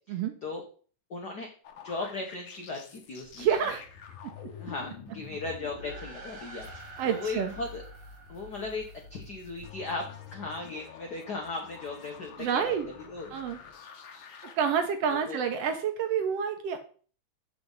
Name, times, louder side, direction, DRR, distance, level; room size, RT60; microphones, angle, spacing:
voice 1, 1.1-1.5 1.8-3.5 4.6-7.8 8.3-12.7 13.1-13.3 15.1-15.4, left 3 dB, 85° left, 2 dB, 0.9 m, -37 dB
sound 1, 1.6-14.6, left 6 dB, 65° left, 1.2 m, -47 dB
voice 2, 3.4-3.8 4.2-4.3 7.0-7.5 12.4-12.9 13.3-13.6 14.5-16.8, right 7 dB, 75° right, 7 dB, 1.5 m, -28 dB
sound 2, 5.6-9.3, right 3 dB, 35° right, 1.6 m, -48 dB
7.2 x 5.9 x 3.9 m, 0.42 s
omnidirectional pair, 3.3 m